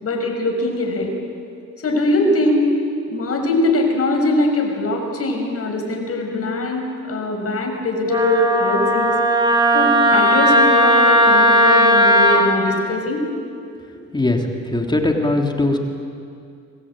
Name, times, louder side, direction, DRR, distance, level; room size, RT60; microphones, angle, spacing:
voice 1, 0.0-1.1 1.8-2.7 3.1-9.1 9.7-13.2, left 2 dB, 50° left, 2 dB, 6.3 m, -21 dB
Wind instrument woodwind instrument, 8.1-12.4, equal, 15° right, 4.9 m, -15 dB
voice 2, 13.9-15.8, left 2 dB, 15° left, 2 dB, 3.2 m, -20 dB
26.0 x 20.5 x 9.1 m, 2.4 s
cardioid pair, 90°, 30 cm